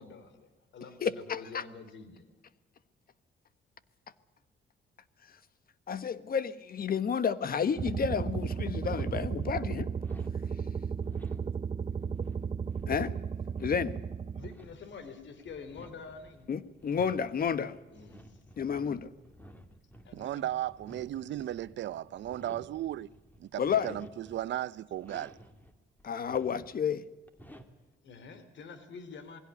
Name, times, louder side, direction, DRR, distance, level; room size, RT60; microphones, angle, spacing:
voice 1, 0.0-2.3 14.3-16.5 17.9-18.4 20.0-20.5 28.0-29.4, left 5 dB, 65° left, 3.0 m, -47 dB
voice 2, 1.0-1.6 5.9-9.9 12.9-13.1 13.6-14.0 16.5-17.8 18.6-19.1 23.6-24.0 26.0-27.1, left 7 dB, 50° left, 1.3 m, -31 dB
sound 1, 7.8-14.5, right 6 dB, 30° right, 0.6 m, -34 dB
sound 2, 8.9-9.3 10.0-25.7 26.0-26.8 27.2-27.9, equal, 10° left, 2.5 m, -54 dB
voice 3, 20.1-23.1 23.4-25.4, right 12 dB, 65° right, 0.7 m, -36 dB
21.0 x 16.5 x 9.6 m
cardioid pair, 90°, 20 cm